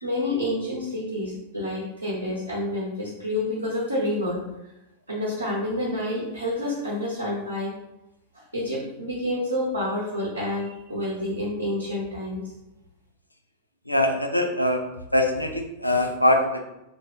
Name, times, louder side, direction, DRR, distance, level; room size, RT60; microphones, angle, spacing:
voice 1, 0.0-4.4 5.1-7.7 8.5-12.5, left 1 dB, 80° right, -6 dB, 0.6 m, -28 dB
voice 2, 13.9-14.8 15.1-16.6, left 1 dB, 85° left, 3 dB, 0.3 m, -22 dB
2.6 x 2.2 x 3.1 m, 0.90 s
figure-of-eight pair, 90°, 0 cm